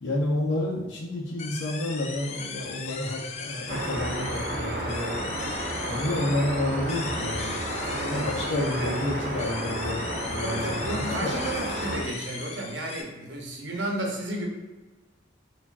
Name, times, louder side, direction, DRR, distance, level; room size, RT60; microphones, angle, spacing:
voice 1, 0.0-5.2 5.8-7.6 8.1-11.4, left 1 dB, 80° left, -3 dB, 0.7 m, -30 dB
sound 1, 1.4-13.0, left 5 dB, 35° left, 0.3 m, -38 dB
sound 2, 3.7-12.0, right 1 dB, 50° right, 0.6 m, -32 dB
voice 2, 7.8-8.3 8.8-8.9 10.4-14.5, right 1 dB, 80° right, 0 dB, 0.8 m, -33 dB
4.6 x 2.5 x 2.4 m, 1.2 s
head